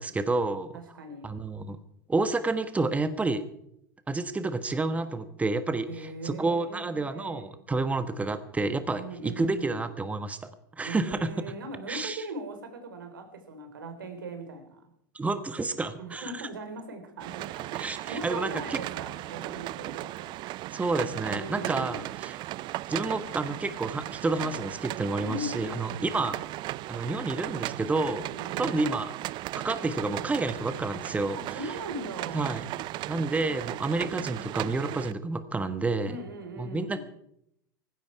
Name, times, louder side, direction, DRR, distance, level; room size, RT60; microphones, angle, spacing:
voice 1, 0.0-0.7 1.2-1.8 2.1-3.4 4.1-10.4 10.7-11.3 11.9-12.2 15.1-16.3 17.7-18.8 20.7-22.4 22.9-26.3 26.9-28.2 28.6-29.1 29.5-31.7 32.3-32.6 33.1-36.2 36.6-37.0, right 3 dB, 15° right, 10 dB, 1.3 m, -29 dB
voice 2, 0.7-1.3 5.9-7.5 9.0-9.8 10.8-14.8 16.0-20.4 21.3-22.0 25.2-26.2 28.2-28.8 31.4-32.7 36.0-37.0, right 2 dB, 90° right, 6 dB, 4.1 m, -40 dB
sound 1, 17.2-35.1, right 17 dB, 45° right, 0.5 m, -36 dB
18.0 x 15.5 x 4.8 m, 0.75 s
hypercardioid pair, 100°, 11 cm